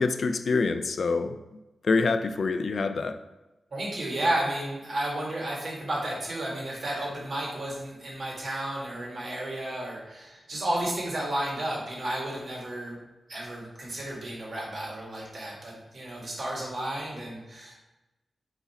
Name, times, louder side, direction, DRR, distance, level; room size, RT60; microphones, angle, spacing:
voice 1, 0.0-1.4 1.8-3.2, left 4 dB, 65° left, 9 dB, 0.4 m, -26 dB
voice 2, 3.7-13.0 13.3-17.8, right 1 dB, 55° right, -3 dB, 2.1 m, -32 dB
5.3 x 4.8 x 4.3 m, 1.0 s
wide cardioid pair, 115°, 0 cm